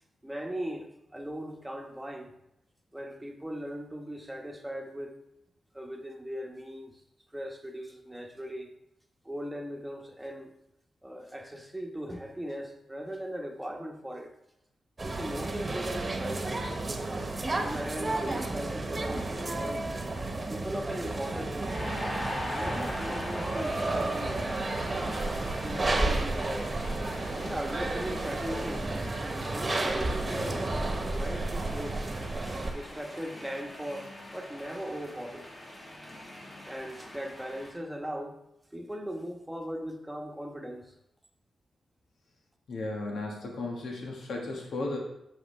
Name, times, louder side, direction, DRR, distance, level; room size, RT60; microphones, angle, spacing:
voice 1, 0.2-2.3 2.9-5.2 5.7-6.9 7.3-8.7 9.2-10.5 11.0-14.3 15.0-16.7 17.5-20.0 20.5-21.8 22.5-24.5 25.1-26.7 27.3-28.9 29.4-30.6 30.9-32.1 32.7-35.5 36.4-38.4 38.7-40.9, equal, 10° right, 2 dB, 1.2 m, -39 dB
sound 1, 15.0-32.7, right 2 dB, 35° right, 1.2 m, -32 dB
sound 2, 21.0-37.7, left 1 dB, 40° left, 2.3 m, -42 dB
sound 3, 23.9-29.1, right 4 dB, 85° right, 0.7 m, -42 dB
voice 2, 42.7-45.0, left 2 dB, 80° left, 0 dB, 1.4 m, -35 dB
7.9 x 6.8 x 3.2 m, 0.80 s
cardioid pair, 70°, 0 cm